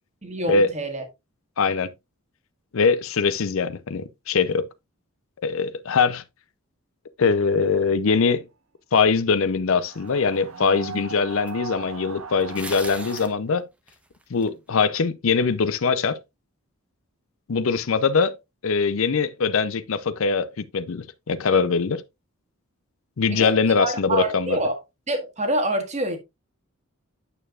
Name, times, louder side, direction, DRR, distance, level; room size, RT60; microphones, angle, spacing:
voice 1, 0.2-1.0 23.3-24.8 25.1-26.2, right 1 dB, 30° right, 1.5 m, -26 dB
voice 2, 1.6-1.9 2.7-4.7 5.4-6.2 7.2-8.4 8.9-13.6 14.3-16.2 17.5-18.4 18.6-22.0 23.2-24.6, left 5 dB, 65° left, 0.5 m, -22 dB
sound 1, 9.7-13.3, right 5 dB, 75° right, 0.9 m, -38 dB
sound 2, 10.3-10.4 11.5-11.6 12.4-13.4 13.9-14.5, right 1 dB, 5° right, 0.8 m, -38 dB
8.9 x 6.6 x 2.4 m
head